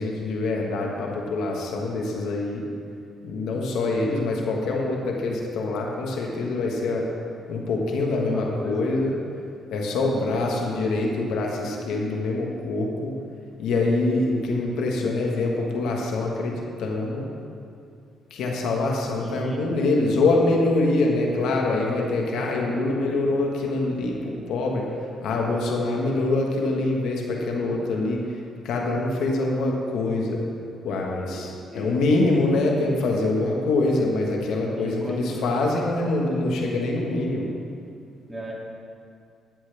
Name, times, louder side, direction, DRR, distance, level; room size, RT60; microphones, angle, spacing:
voice 1, 0.0-2.6 3.2-7.1 7.5-9.1 9.7-13.2 13.6-17.3 18.3-24.8 25.2-30.4 30.8-37.5, left 2 dB, 85° left, -1 dB, 1.5 m, -25 dB
voice 2, 8.1-8.8 9.9-10.1 19.2-19.9 31.7-32.0 34.8-35.4 38.3-38.5, right 1 dB, 10° right, -5 dB, 2.6 m, -35 dB
12.5 x 9.8 x 3.5 m, 2.4 s
cardioid pair, 90°, 0 cm